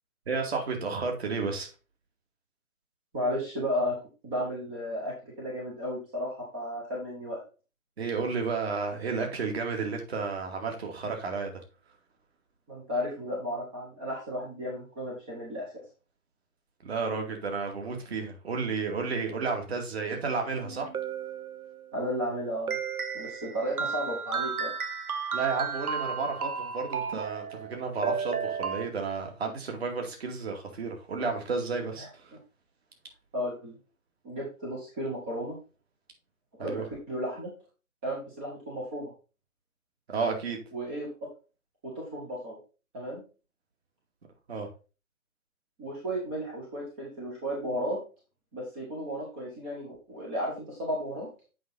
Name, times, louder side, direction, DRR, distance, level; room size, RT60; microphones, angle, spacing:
voice 1, 0.3-1.7 8.0-11.5 16.8-20.9 25.3-32.3 36.6-36.8 40.1-40.6 44.5-44.7, right 4 dB, 45° right, 2 dB, 2.4 m, -32 dB
voice 2, 3.1-4.0 4.2-7.4 12.7-15.8 21.9-22.8 23.1-24.7 32.0-32.1 33.3-33.7 34.2-35.6 36.6-37.5 38.0-39.1 40.7-41.3 41.8-42.6 42.9-43.2 45.8-48.0 48.5-51.3, equal, 10° right, -4 dB, 0.7 m, -34 dB
sound 1, 20.6-22.0 22.7-28.9, right 6 dB, 80° right, 0.9 m, -33 dB
7.6 x 5.3 x 4.1 m, 0.33 s
figure-of-eight pair, 145°, 43 cm